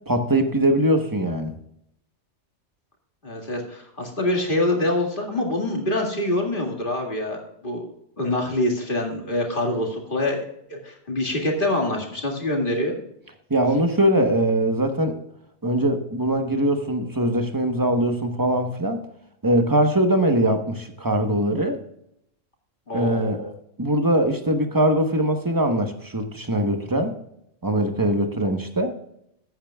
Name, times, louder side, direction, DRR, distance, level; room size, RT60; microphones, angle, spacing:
voice 1, 0.1-1.5 13.5-15.2 15.6-19.0 19.4-21.8 22.9-23.5 23.8-27.2 27.6-29.0, right 1 dB, 20° right, 6 dB, 1.0 m, -22 dB
voice 2, 3.2-7.9 8.2-13.0 22.9-23.4, left 1 dB, 45° left, 1 dB, 2.3 m, -25 dB
14.0 x 8.9 x 2.3 m, 0.74 s
omnidirectional pair, 1.2 m